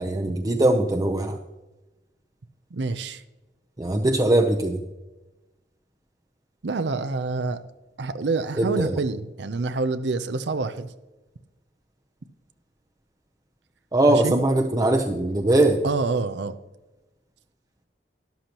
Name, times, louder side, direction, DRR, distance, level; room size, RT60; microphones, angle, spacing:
voice 1, 0.0-1.4 3.8-4.8 8.5-9.0 13.9-15.8, right 1 dB, 20° right, 2 dB, 0.7 m, -21 dB
voice 2, 2.7-3.2 6.6-7.6 8.0-10.9 14.1-14.4 15.8-16.5, right 3 dB, 75° right, 11 dB, 0.6 m, -27 dB
13.0 x 11.5 x 3.0 m, 1.1 s
head